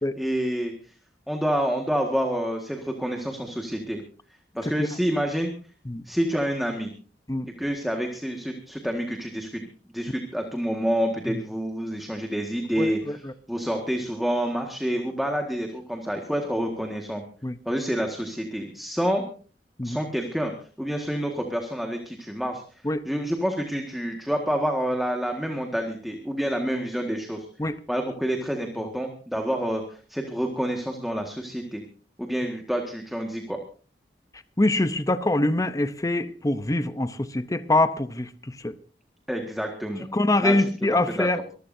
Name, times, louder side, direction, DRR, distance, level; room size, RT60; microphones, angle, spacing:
voice 1, 0.1-0.7 1.3-4.0 4.6-5.5 6.0-6.9 7.6-9.6 9.9-17.2 17.6-19.3 19.8-20.5 20.8-22.6 23.0-27.4 27.9-31.8 32.2-33.6 39.3-40.1 40.4-40.6 41.1-41.3, equal, ahead, 1.7 m, -28 dB
voice 2, 12.8-13.3 17.4-17.6 19.8-20.0 22.8-23.0 27.6-27.8 34.6-38.8 40.1-41.4, left 2 dB, 20° left, 0.7 m, -24 dB
24.0 x 15.0 x 2.7 m
head